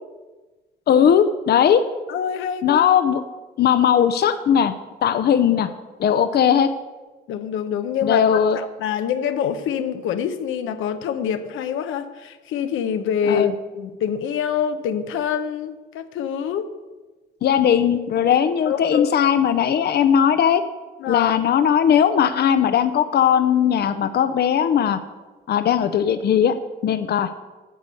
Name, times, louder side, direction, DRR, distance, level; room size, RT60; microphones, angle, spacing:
voice 1, 0.9-1.8 2.6-3.2 3.6-4.7 5.0-5.7 6.0-6.7 8.0-8.6 13.3-13.5 17.4-20.6 21.1-25.0 25.5-26.6 26.8-27.3, left 8 dB, 55° left, 10 dB, 0.6 m, -18 dB
voice 2, 2.1-2.9 7.3-13.5 13.7-16.7 18.7-19.1 21.0-21.3, left 8 dB, 85° left, 9 dB, 0.8 m, -26 dB
9.8 x 6.8 x 6.4 m, 1.2 s
cardioid pair, 90°, 20 cm